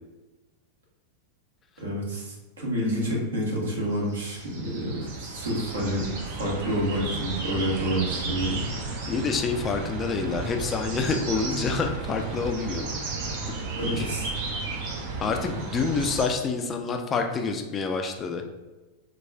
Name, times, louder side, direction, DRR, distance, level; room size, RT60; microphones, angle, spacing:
voice 1, 1.8-8.6 13.8-14.3, equal, 65° right, -4 dB, 1.1 m, -28 dB
sound 1, 4.0-16.3, right 3 dB, 50° right, 0.6 m, -33 dB
voice 2, 9.1-12.9 13.4-13.5 14.0-14.1 15.2-18.4, left 4 dB, 25° left, 4 dB, 0.3 m, -27 dB
4.1 x 2.3 x 2.3 m, 1.1 s
figure-of-eight pair, 90°, 0 cm